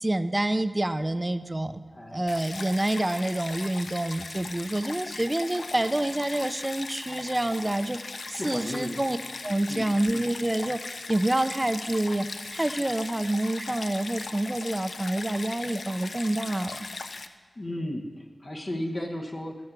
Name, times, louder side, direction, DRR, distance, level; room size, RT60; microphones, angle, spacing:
voice 1, 0.0-1.7 2.1-9.2 9.4-12.3 12.5-16.9, right 1 dB, 20° right, 11 dB, 0.5 m, -27 dB
voice 2, 1.9-2.3 8.4-9.0 9.7-9.9 17.5-19.7, left 1 dB, 45° left, 1 dB, 1.0 m, -34 dB
Stream, 2.3-17.3, left 3 dB, 80° left, 0.6 m, -39 dB
15.0 x 7.9 x 6.0 m, 1.6 s
wide cardioid pair, 85°, 0 cm